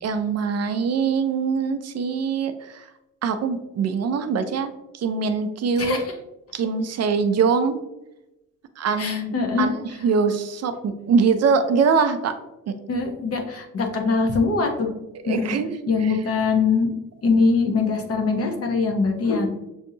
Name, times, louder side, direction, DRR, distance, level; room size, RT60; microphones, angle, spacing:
voice 1, 0.0-2.9 3.2-6.0 6.5-7.8 8.8-9.7 10.0-12.3 12.7-12.8 15.2-16.1, right 5 dB, 50° right, 8 dB, 0.4 m, -23 dB
voice 2, 5.8-6.1 9.0-9.7 12.9-14.9 15.3-15.5 15.9-16.9 17.2-19.5, left 4 dB, 45° left, 4 dB, 0.8 m, -22 dB
6.3 x 2.6 x 2.7 m, 0.92 s
cardioid pair, 125°, 33 cm